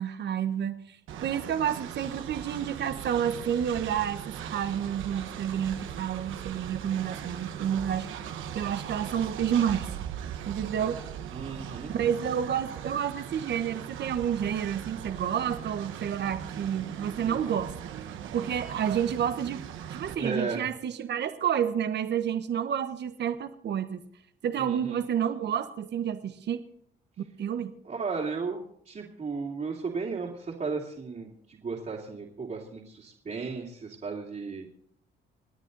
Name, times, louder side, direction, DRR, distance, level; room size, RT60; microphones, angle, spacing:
voice 1, 0.0-8.1 8.5-9.9 10.5-11.0 11.9-17.9 18.3-19.6 19.9-24.0 24.4-26.6 27.4-27.7, right 9 dB, 60° right, 10 dB, 1.1 m, -30 dB
Train, 1.1-20.1, right 9 dB, 85° right, 1.4 m, -39 dB
voice 2, 11.3-12.0 17.2-17.4 20.2-20.7 24.6-25.0 27.8-34.7, right 4 dB, 40° right, -4 dB, 2.9 m, -35 dB
27.0 x 9.2 x 4.0 m, 0.69 s
cardioid pair, 90°, 20 cm